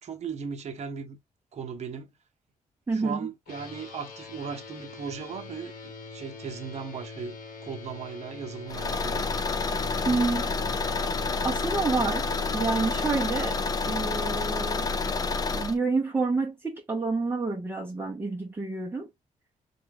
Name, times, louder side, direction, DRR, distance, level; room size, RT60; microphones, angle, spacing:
voice 1, 0.0-1.2 1.5-2.1 2.9-7.4 7.6-9.3, right 6 dB, 50° right, 0.8 m, -37 dB
voice 2, 2.9-3.3 10.1-10.6 10.9-11.1 11.4-12.3 12.5-13.6 13.9-14.9 15.5-19.1, right 3 dB, 15° right, 0.6 m, -28 dB
sound 1, 3.5-15.3, left 3 dB, 85° left, 1.2 m, -44 dB
Car / Engine, 8.7-15.8, left 4 dB, 25° left, 0.4 m, -29 dB
4.2 x 2.2 x 3.5 m
cardioid pair, 135°, 14 cm